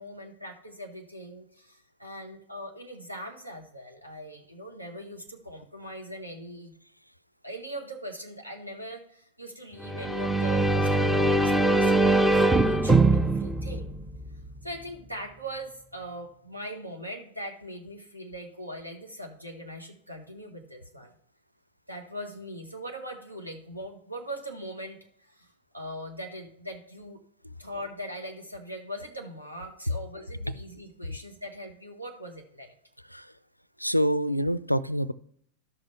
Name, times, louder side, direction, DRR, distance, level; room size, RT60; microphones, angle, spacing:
voice 1, 0.0-6.7 7.4-13.9 14.6-21.1 21.9-27.2 27.6-32.7, right 1 dB, 85° right, 2 dB, 1.4 m, -41 dB
sound 1, 9.8-14.6, right 2 dB, 10° right, 0.5 m, -22 dB
voice 2, 33.8-35.1, equal, 90° left, 18 dB, 0.3 m, -26 dB
12.5 x 6.1 x 3.2 m, 0.67 s
figure-of-eight pair, 90°, 0 cm